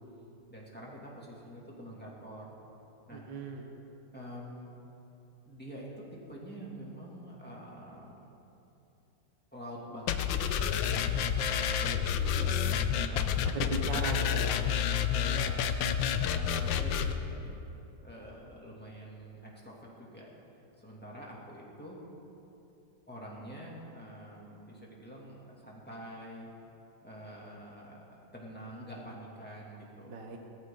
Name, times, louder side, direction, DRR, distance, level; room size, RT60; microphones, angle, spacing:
voice 1, 0.5-2.5 3.1-3.3 4.1-4.8 5.4-8.2 9.5-10.2 10.6-11.1 11.7-14.0 15.1-15.7 16.2-17.6 18.0-20.3 20.8-22.0 23.1-26.5 27.0-30.1, equal, 5° left, -4 dB, 2.5 m, -46 dB
voice 2, 3.1-3.7 13.4-14.6 30.1-30.4, right 4 dB, 75° right, 2 dB, 1.8 m, -37 dB
sound 1, 10.1-17.1, left 8 dB, 85° left, 1.4 m, -29 dB
19.5 x 14.0 x 3.9 m, 2.9 s
omnidirectional pair, 2.0 m